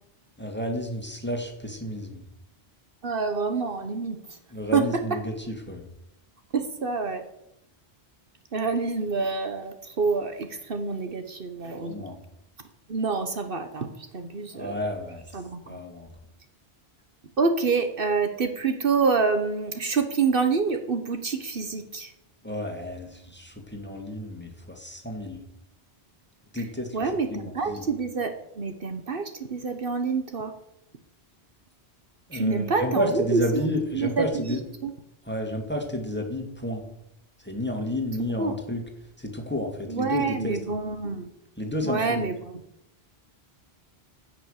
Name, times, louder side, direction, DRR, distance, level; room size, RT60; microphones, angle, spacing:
voice 1, 0.4-2.3 4.5-5.9 11.7-12.2 14.5-15.2 15.7-16.1 22.4-25.4 26.5-27.9 32.3-34.6 35.3-36.8 37.4-38.9 39.2-40.8 41.6-42.3, left 1 dB, 10° left, 2 dB, 2.1 m, -31 dB
voice 2, 3.0-4.4 4.7-4.8 6.5-7.2 8.5-12.1 12.9-14.7 15.3-15.8 17.4-22.1 26.6-26.7 26.9-30.5 32.3-34.9 38.4-38.6 39.9-41.3 41.8-42.3, right 4 dB, 60° right, 7 dB, 1.3 m, -27 dB
16.0 x 6.2 x 6.6 m, 0.81 s
omnidirectional pair, 1.0 m